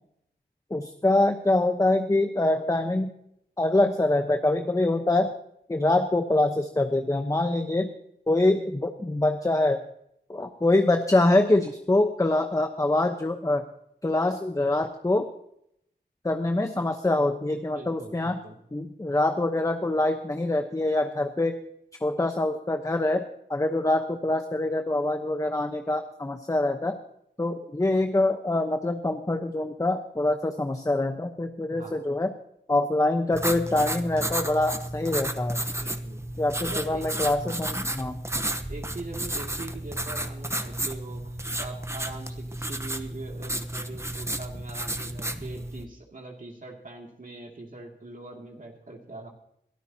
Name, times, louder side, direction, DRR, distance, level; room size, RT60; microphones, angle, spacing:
voice 1, 0.7-3.1 3.6-5.3 5.7-7.9 8.3-9.8 10.3-13.6 14.0-15.3 16.2-18.4 18.7-21.6 22.0-23.2 23.5-27.0 27.4-32.3 32.7-35.6 36.4-38.2, left 2 dB, 15° left, 6 dB, 1.0 m, -25 dB
voice 2, 17.7-18.6 31.7-32.1 35.8-36.2 36.7-37.1 37.4-37.6 38.7-49.3, right 2 dB, 45° right, 0 dB, 2.5 m, -42 dB
sound 1, 33.3-45.8, right 1 dB, 15° right, 1.0 m, -32 dB
22.5 x 13.0 x 2.9 m, 0.73 s
wide cardioid pair, 70°, 19 cm